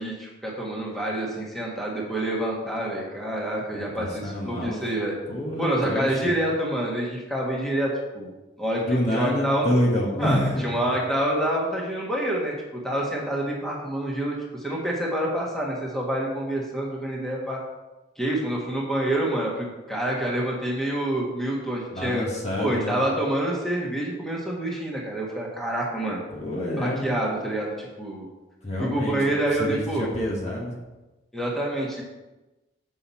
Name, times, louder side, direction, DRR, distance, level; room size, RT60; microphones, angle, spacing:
voice 1, 0.0-5.1 5.6-8.3 8.6-9.7 10.2-12.5 12.8-17.6 18.2-22.3 22.6-26.2 26.8-28.3 28.8-30.1 31.3-32.0, right 1 dB, ahead, -4 dB, 1.3 m, -27 dB
voice 2, 3.7-4.8 5.3-6.2 8.9-11.0 21.9-23.0 26.3-27.2 28.6-29.2 29.5-30.7, left 1 dB, 35° left, -2 dB, 1.1 m, -27 dB
7.7 x 5.5 x 4.3 m, 1.1 s
head